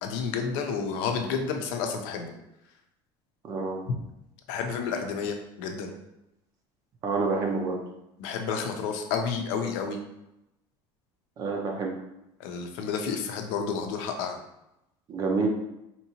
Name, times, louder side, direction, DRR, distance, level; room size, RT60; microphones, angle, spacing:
voice 1, 0.0-2.3 3.9-4.0 4.5-5.9 8.2-10.0 12.4-14.4, left 5 dB, 80° left, 4 dB, 0.6 m, -30 dB
voice 2, 3.4-3.8 7.0-7.8 11.4-11.9 15.1-15.5, right 4 dB, 30° right, 1 dB, 0.4 m, -28 dB
4.4 x 2.8 x 2.8 m, 0.88 s
cardioid pair, 170°, 12 cm